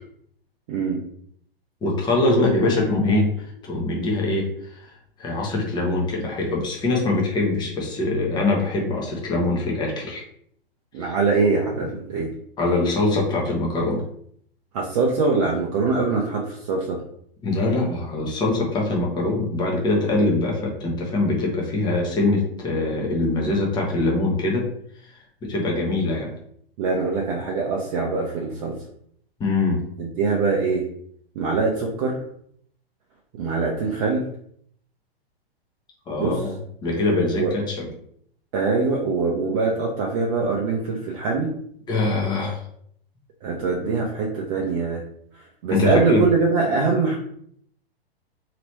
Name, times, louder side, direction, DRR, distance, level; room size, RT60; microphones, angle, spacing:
voice 1, 0.7-1.0 10.9-12.3 14.7-17.0 26.8-28.8 30.0-30.8 31.3-32.2 33.4-34.3 36.2-36.5 37.2-37.5 38.5-41.5 43.4-45.0 45.3-47.2, right 4 dB, 35° right, -2 dB, 0.7 m, -23 dB
voice 2, 1.8-3.3 3.7-4.9 5.2-10.2 12.6-14.0 17.4-24.7 25.4-26.3 29.4-29.8 36.1-37.9 41.9-42.6 45.7-46.2, left 2 dB, 15° left, -2 dB, 0.9 m, -23 dB
3.0 x 2.9 x 3.0 m, 0.66 s
figure-of-eight pair, 110°, 31 cm